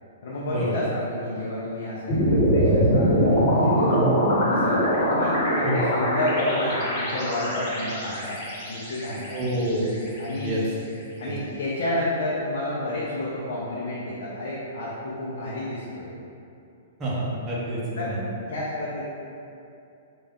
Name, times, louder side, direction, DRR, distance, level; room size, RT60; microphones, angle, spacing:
voice 1, 0.2-3.9 4.5-8.4 8.7-9.4 10.2-10.6 11.2-16.1 18.0-18.1 18.4-19.0, left 1 dB, 65° left, -8 dB, 0.7 m, -30 dB
sound 1, 2.1-10.4, equal, 40° left, 1.3 m, -23 dB
voice 2, 9.3-9.9 10.3-10.6 11.2-11.4 17.0-18.2, right 1 dB, 20° right, -7 dB, 0.9 m, -28 dB
3.3 x 2.6 x 3.6 m, 2.6 s
hypercardioid pair, 125°, 0 cm